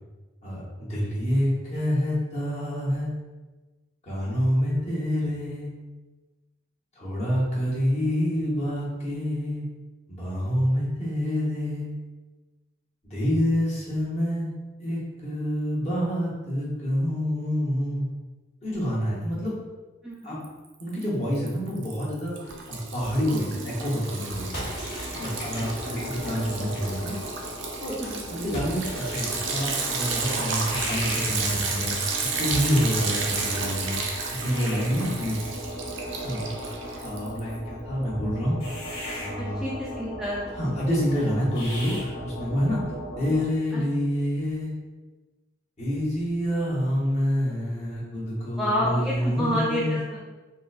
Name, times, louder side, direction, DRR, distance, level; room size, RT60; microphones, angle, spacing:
voice 1, 0.4-3.1 4.0-5.7 7.0-9.6 10.1-11.9 13.0-14.5 14.8-18.1 18.6-19.5 20.2-20.4 20.8-24.7 25.2-27.1 27.8-28.0 28.3-32.1 32.4-35.4 36.2-36.5 37.0-38.6 39.2-39.6 40.5-42.8 43.2-44.7 45.8-50.0, equal, 35° left, -7 dB, 0.9 m, -27 dB
voice 2, 20.0-20.4 25.9-26.1 28.0-28.4 39.4-40.8 43.7-43.8 48.6-50.2, equal, ahead, -7 dB, 0.3 m, -30 dB
Liquid, 20.4-21.0 21.3-37.5, right 4 dB, 70° right, 0.4 m, -32 dB
sound 1, 24.2-43.4, equal, 80° left, 1.0 m, -37 dB
sound 2, 24.5-27.4 28.5-31.5 32.5-35.2, equal, 50° left, 1.2 m, -40 dB
3.6 x 2.1 x 2.4 m, 1.2 s
head